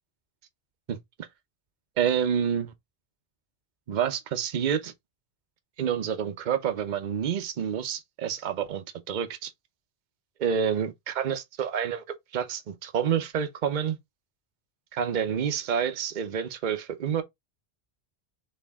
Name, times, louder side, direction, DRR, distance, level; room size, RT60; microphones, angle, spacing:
voice 1, 2.0-2.7 3.9-4.9 5.8-9.5 10.4-12.0 12.3-14.0 14.9-17.2, right 8 dB, 50° right, 0.8 m, -28 dB
4.3 x 3.3 x 3.5 m
omnidirectional pair, 1.1 m